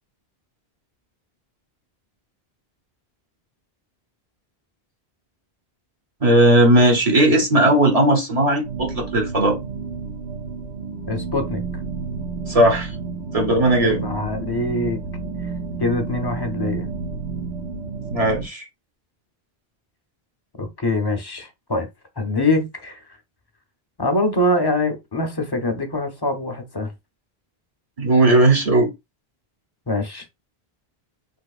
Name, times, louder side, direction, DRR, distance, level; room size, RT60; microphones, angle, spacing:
voice 1, 6.2-9.6 12.5-12.9 13.3-14.0 18.1-18.6 28.0-28.9, right 1 dB, 40° right, 1.0 m, -17 dB
sound 1, 8.6-18.5, right 4 dB, 85° right, 1.1 m, -31 dB
voice 2, 11.1-11.6 13.8-15.0 15.8-16.9 20.6-21.9 22.2-23.0 24.0-26.9 29.9-30.3, left 2 dB, 30° left, 0.5 m, -24 dB
3.4 x 2.9 x 2.3 m
omnidirectional pair, 1.0 m